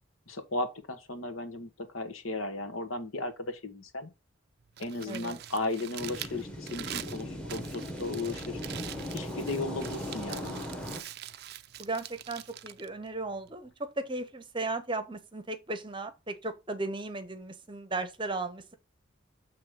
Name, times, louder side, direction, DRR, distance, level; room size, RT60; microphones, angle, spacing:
voice 1, 0.3-4.1 4.8-8.6 9.1-10.7, left 2 dB, 85° left, 1.3 m, -35 dB
Crumpling crinkling, 4.6-13.7, right 11 dB, 50° right, 0.4 m, -44 dB
voice 2, 5.1-5.4 11.8-18.7, right 2 dB, 25° right, 0.8 m, -36 dB
sound 1, 6.0-11.0, left 1 dB, 5° left, 1.1 m, -38 dB
7.7 x 3.1 x 5.0 m
head